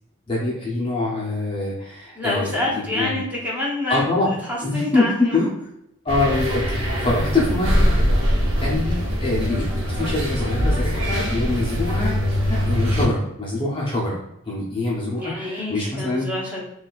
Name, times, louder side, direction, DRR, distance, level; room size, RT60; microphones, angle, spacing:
voice 1, 0.3-3.2 3.9-4.3 4.6-5.4 6.0-7.9 8.6-14.2 14.5-16.3, left 2 dB, 25° left, -4 dB, 0.5 m, -24 dB
voice 2, 2.1-4.0 4.5-5.5 15.2-16.6, left 2 dB, 10° right, -5 dB, 0.8 m, -27 dB
sound 1, 6.1-13.1, equal, 70° right, 0.7 m, -22 dB
4.0 x 2.3 x 2.3 m, 0.81 s
head